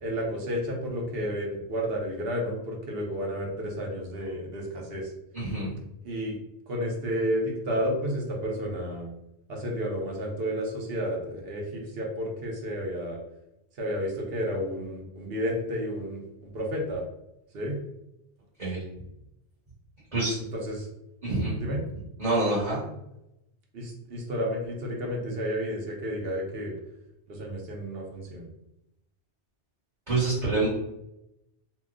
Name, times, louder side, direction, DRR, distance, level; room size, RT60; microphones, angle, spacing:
voice 1, 0.0-5.1 6.0-6.4 6.7-9.1 9.5-13.2 13.8-17.0 17.5-17.8 20.5-20.9 21.6-21.8 23.7-26.8 27.3-28.5, equal, 60° right, 0 dB, 0.9 m, -31 dB
voice 2, 5.3-5.7 18.6-18.8 20.1-20.3 21.2-21.7 22.2-22.8 30.1-30.7, right 2 dB, 35° right, -9 dB, 1.3 m, -26 dB
2.8 x 2.2 x 3.6 m, 0.87 s
omnidirectional pair, 1.2 m